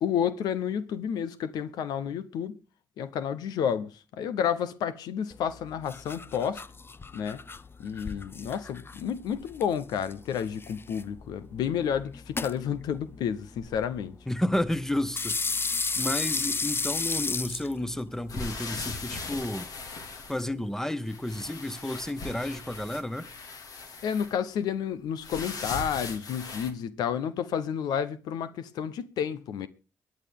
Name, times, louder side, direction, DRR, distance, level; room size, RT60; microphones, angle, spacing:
voice 1, 0.0-2.6 3.0-6.6 7.1-7.4 7.8-14.1 24.0-29.7, left 8 dB, 75° left, 0.9 m, -30 dB
sound 1, 5.3-19.5, left 4 dB, 35° left, 0.9 m, -35 dB
voice 2, 14.3-15.4 16.0-19.7 20.3-23.3, left 1 dB, 5° left, 1.4 m, -31 dB
sound 2, 18.3-20.8 21.1-24.4 25.2-26.7, left 3 dB, 60° left, 2.6 m, -39 dB
23.0 x 9.6 x 3.6 m
hypercardioid pair, 50°, 7 cm